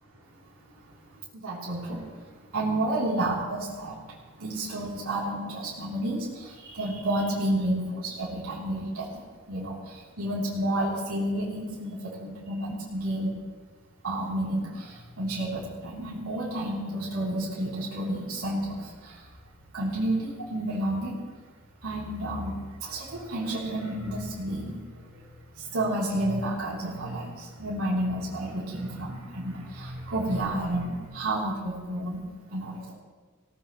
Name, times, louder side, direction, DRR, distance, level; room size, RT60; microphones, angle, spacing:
voice 1, 1.3-9.2 9.5-13.3 14.0-19.3 19.7-21.2 21.8-25.2 25.5-32.2 32.5-32.9, right 1 dB, 80° right, -7 dB, 3.3 m, -31 dB
19.0 x 17.0 x 3.1 m, 1.5 s
head